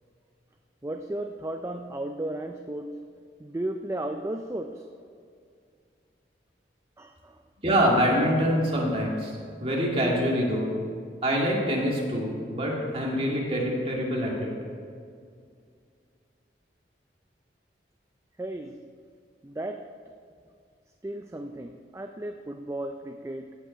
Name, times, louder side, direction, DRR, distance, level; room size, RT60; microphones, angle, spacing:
voice 1, 0.8-3.0 3.4-4.9 7.0-7.4 18.4-18.8 19.4-19.9 21.0-23.6, right 1 dB, 15° right, 5 dB, 0.3 m, -34 dB
voice 2, 7.6-10.7 11.2-14.5, equal, 30° right, -3 dB, 2.0 m, -25 dB
15.5 x 5.6 x 5.7 m, 2.2 s
head